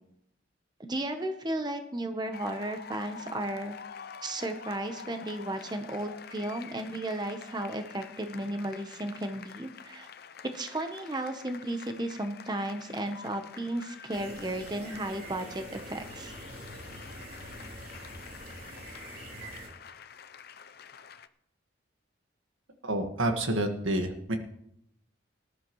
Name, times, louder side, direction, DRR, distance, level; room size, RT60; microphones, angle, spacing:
voice 1, 0.8-3.8 4.2-10.1 10.4-16.3, right 1 dB, 20° right, 6 dB, 0.9 m, -34 dB
sound 1, 2.3-21.3, left 6 dB, 50° left, 0.5 m, -47 dB
sound 2, 14.1-19.7, right 1 dB, 50° right, 3.3 m, -45 dB
voice 2, 22.8-24.4, right 1 dB, 85° right, 5 dB, 1.6 m, -29 dB
19.5 x 11.5 x 3.1 m, 0.75 s
head